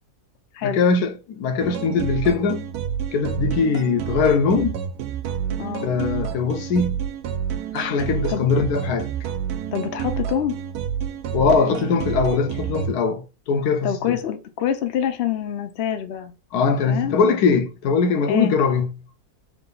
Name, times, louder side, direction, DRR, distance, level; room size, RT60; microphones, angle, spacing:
voice 1, 0.6-2.7 3.1-4.8 5.8-7.0 7.7-9.1 11.3-14.2 16.5-18.9, left 5 dB, 75° left, 1.1 m, -21 dB
sound 1, 1.6-12.9, right 8 dB, 80° right, 1.1 m, -29 dB
voice 2, 5.6-5.9 8.3-8.5 9.7-10.6 13.8-16.3 16.9-17.2 18.3-18.6, left 9 dB, 60° left, 0.7 m, -26 dB
3.6 x 2.9 x 3.7 m
omnidirectional pair, 1.7 m